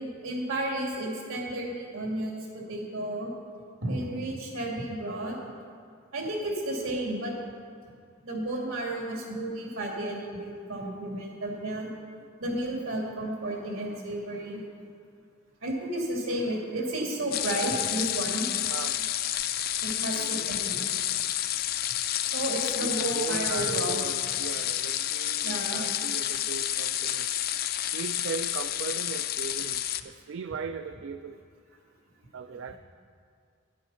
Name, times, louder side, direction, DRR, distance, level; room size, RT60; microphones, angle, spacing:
voice 1, 0.0-3.3 3.8-5.4 6.1-7.3 8.2-11.9 12.4-14.6 15.6-18.5 19.8-20.8 22.3-24.0 24.3-24.4 25.4-25.8, right 1 dB, 85° right, -1 dB, 2.5 m, -32 dB
sound 1, 17.3-30.0, left 12 dB, 50° left, 0.4 m, -30 dB
voice 2, 18.7-19.0 20.1-20.5 22.6-27.3 27.9-31.4 32.3-32.8, right 6 dB, 70° right, 9 dB, 0.3 m, -38 dB
10.5 x 8.4 x 5.6 m, 2.2 s
head